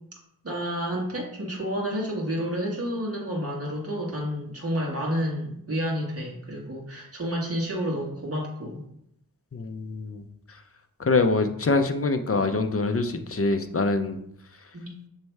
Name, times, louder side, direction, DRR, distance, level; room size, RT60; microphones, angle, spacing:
voice 1, 0.4-8.8 14.7-14.9, equal, 35° right, -3 dB, 1.7 m, -30 dB
voice 2, 9.5-10.2 11.0-14.2, left 3 dB, 35° left, 7 dB, 0.5 m, -24 dB
6.7 x 3.2 x 4.6 m, 0.75 s
wide cardioid pair, 95°, 38 cm